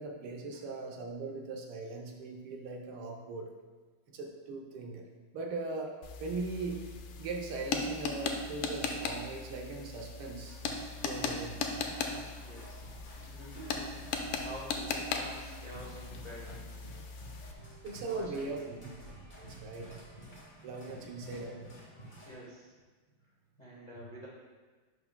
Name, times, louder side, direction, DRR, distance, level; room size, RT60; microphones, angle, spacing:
voice 1, 0.0-3.5 4.1-5.0 5.3-6.8 7.2-10.6 11.0-11.5 17.8-18.6 19.4-20.1 20.5-21.6, right 3 dB, 80° right, 2 dB, 1.7 m, -39 dB
sound 1, 6.0-17.5, left 4 dB, 90° left, 1.6 m, -38 dB
sound 2, 10.5-22.3, right 1 dB, 25° left, 1.4 m, -52 dB
voice 2, 11.1-11.5 12.4-12.8 13.2-13.9 14.4-16.7 18.0-18.8 21.0-21.1 22.3-22.7 23.6-24.3, equal, 65° left, -5 dB, 0.4 m, -48 dB
11.0 x 4.7 x 2.2 m, 1.4 s
omnidirectional pair, 2.4 m